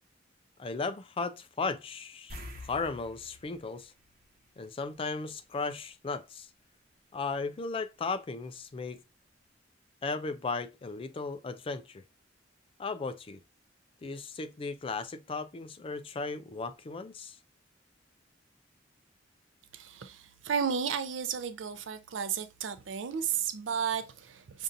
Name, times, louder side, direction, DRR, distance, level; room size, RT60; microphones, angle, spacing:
voice 1, 0.6-2.4 2.6-3.9 4.6-6.5 7.1-9.0 10.0-12.0 12.8-13.4 14.0-17.4, left 4 dB, 30° left, 0.3 m, -36 dB
sound 1, 2.3-5.1 5.4-5.6 8.4-8.5 8.9-9.0, left 1 dB, 50° right, 1.0 m, -48 dB
voice 2, 19.7-24.6, right 7 dB, 85° right, 0.5 m, -33 dB
5.4 x 2.6 x 2.5 m
head